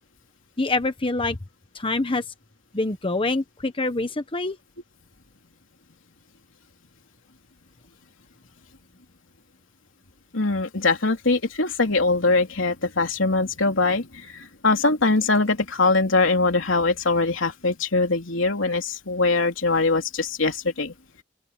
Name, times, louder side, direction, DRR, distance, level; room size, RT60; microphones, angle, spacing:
voice 1, 0.6-1.4 1.7-2.2 2.7-4.6, left 2 dB, 25° left, 1.2 m, -25 dB
voice 2, 10.3-20.9, left 3 dB, 85° left, 3.1 m, -22 dB
open air
head